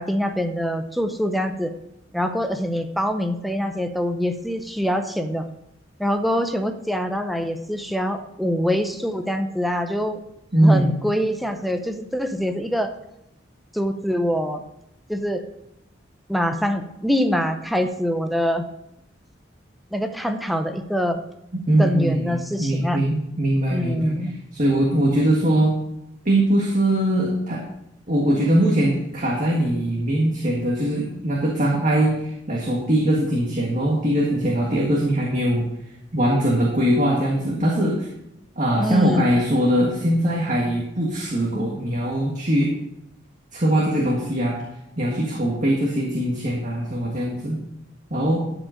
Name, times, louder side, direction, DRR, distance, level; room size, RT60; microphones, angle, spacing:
voice 1, 0.0-1.7 2.1-5.5 6.0-10.2 10.6-12.9 13.7-14.6 15.1-15.4 16.3-18.7 19.9-21.2 21.8-23.0 23.7-24.3 38.8-39.3, equal, ahead, 5 dB, 0.7 m, -24 dB
voice 2, 10.5-10.9 21.5-22.3 22.6-24.2 24.5-25.8 26.2-27.6 28.1-35.7 36.1-38.1 38.6-42.7 43.5-44.6 45.0-47.6 48.1-48.4, right 1 dB, 40° right, -2 dB, 1.6 m, -21 dB
12.5 x 5.1 x 5.1 m, 0.83 s
head